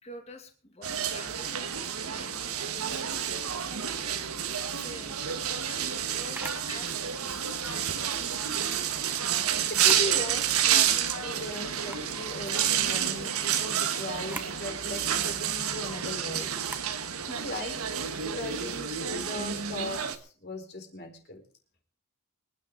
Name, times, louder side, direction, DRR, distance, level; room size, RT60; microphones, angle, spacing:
voice 1, 0.0-3.5 4.7-5.2 5.7-8.6, left 2 dB, 30° left, 4 dB, 2.5 m, -48 dB
sound 1, 0.8-20.2, right 9 dB, 80° right, 1.5 m, -29 dB
Camera, 6.3-6.7 8.4-8.7 9.7-10.1 10.6-10.7 11.8-12.1 14.2-14.6 16.6-16.9, right 2 dB, 10° right, 1.1 m, -41 dB
voice 2, 9.7-16.5 17.3-21.4, left 1 dB, 45° left, 4 dB, 4.1 m, -38 dB
25.0 x 10.5 x 3.9 m, 0.40 s
head